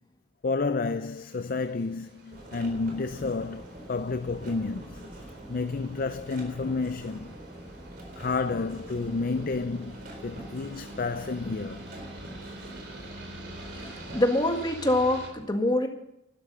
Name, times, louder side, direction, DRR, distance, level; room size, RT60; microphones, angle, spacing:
voice 1, 0.4-5.1 5.5-7.3 8.2-11.8, left 4 dB, 50° left, 0.5 m, -30 dB
sound 1, 0.8-15.3, right 1 dB, 65° right, 3.9 m, -49 dB
sound 2, 2.3-14.2, right 1 dB, 50° right, 4.0 m, -44 dB
Wind instrument woodwind instrument, 8.7-14.1, right 1 dB, 30° right, 2.0 m, -48 dB
voice 2, 14.1-15.9, left 1 dB, 25° left, 1.8 m, -24 dB
12.0 x 12.0 x 6.8 m
head